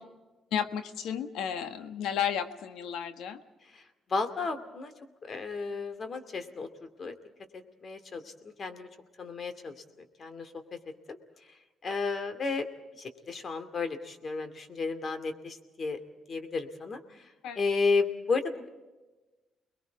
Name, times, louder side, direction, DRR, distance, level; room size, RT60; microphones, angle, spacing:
voice 1, 0.5-3.4 17.4-17.6, left 8 dB, 85° left, 9 dB, 1.5 m, -33 dB
voice 2, 4.1-4.9 5.2-6.7 7.0-7.1 7.8-8.9 9.2-9.7 10.2-10.5 11.1-11.2 11.8-12.7 13.0-16.0 16.3-17.0 17.6-18.7, left 4 dB, 45° left, 10 dB, 2.4 m, -32 dB
30.0 x 21.5 x 4.7 m, 1.2 s
cardioid pair, 90°, 0 cm